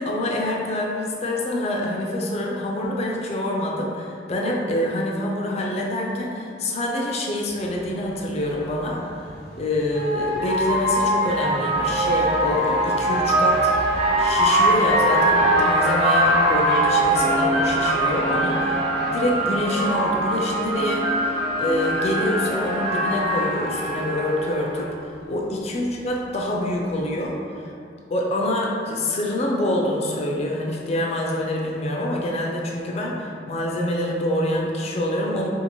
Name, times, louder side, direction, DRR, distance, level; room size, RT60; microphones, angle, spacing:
voice 1, 0.0-9.0 9.6-13.7 14.2-21.1 21.6-27.4 27.6-27.7 28.1-35.5, left 1 dB, 35° left, -1 dB, 0.3 m, -26 dB
sound 1, 7.7-7.8 9.3-24.9, right 1 dB, 30° right, 0.8 m, -22 dB
2.6 x 2.4 x 2.9 m, 2.4 s
head